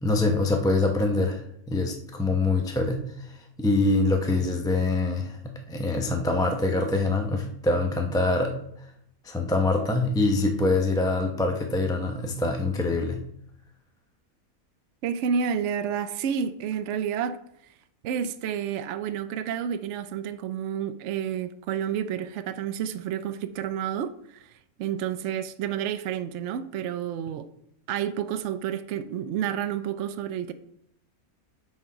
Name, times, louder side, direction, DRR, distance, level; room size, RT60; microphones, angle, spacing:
voice 1, 0.0-8.5 9.2-13.2, left 2 dB, 5° left, 0.5 m, -25 dB
voice 2, 15.0-17.4 18.0-24.4 24.8-27.5 27.9-30.5, right 8 dB, 65° right, 0.8 m, -30 dB
9.5 x 4.3 x 4.9 m
omnidirectional pair, 1.5 m